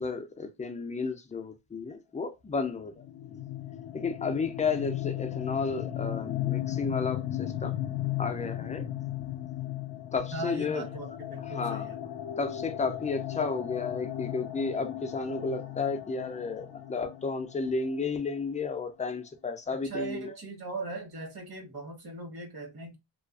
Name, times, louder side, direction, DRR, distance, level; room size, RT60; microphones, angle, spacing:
voice 1, 0.0-2.9 3.3-3.4 3.9-7.8 8.2-8.9 10.1-11.2 11.5-11.9 12.4-20.4, left 4 dB, 20° left, 0.3 m, -32 dB
sound 1, 3.0-18.6, left 12 dB, 55° left, 0.6 m, -36 dB
voice 2, 10.3-12.0 12.8-13.0 19.8-23.0, right 2 dB, 50° right, 1.1 m, -39 dB
2.4 x 2.2 x 2.3 m
cardioid pair, 95°, 47 cm